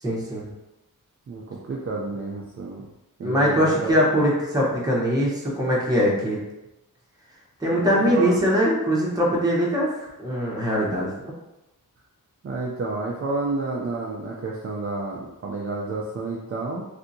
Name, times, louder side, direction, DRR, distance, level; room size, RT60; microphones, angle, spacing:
voice 1, 0.0-0.5 3.2-6.4 7.6-11.3, equal, 10° right, -5 dB, 0.9 m, -22 dB
voice 2, 1.3-2.8 3.2-4.0 7.6-8.3 12.4-16.8, right 3 dB, 40° right, -3 dB, 0.4 m, -30 dB
3.3 x 2.7 x 2.6 m, 0.95 s
wide cardioid pair, 135°, 36 cm